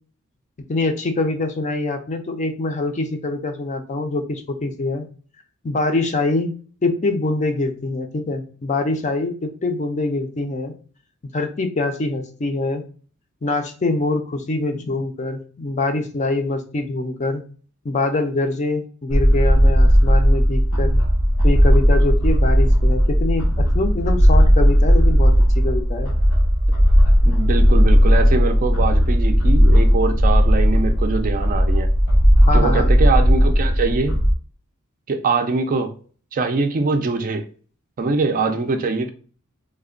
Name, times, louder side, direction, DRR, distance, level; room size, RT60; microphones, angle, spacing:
voice 1, 0.7-5.1 5.6-6.5 6.8-10.7 11.3-12.8 13.4-17.4 17.8-21.0 21.4-26.1 32.5-32.9, left 2 dB, 35° left, 0.5 m, -24 dB
sound 1, 19.1-34.3, equal, 90° left, 0.8 m, -15 dB
voice 2, 27.2-31.9 32.5-34.2 35.1-35.9 36.3-37.5 38.0-39.1, right 4 dB, 40° right, 0.4 m, -23 dB
3.2 x 2.1 x 3.7 m
head